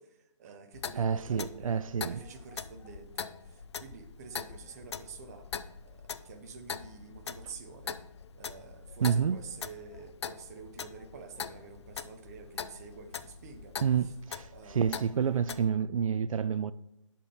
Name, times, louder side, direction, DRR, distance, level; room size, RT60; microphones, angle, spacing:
voice 1, 0.0-5.5 5.8-8.0 8.4-13.7 14.0-14.1 14.5-15.1, right 5 dB, 30° right, 0.9 m, -48 dB
Clock, 0.7-15.7, left 7 dB, 55° left, 0.5 m, -43 dB
voice 2, 1.0-2.2 9.0-9.4 13.8-16.7, right 7 dB, 80° right, 0.4 m, -29 dB
12.5 x 4.3 x 3.6 m
hypercardioid pair, 160°, 17 cm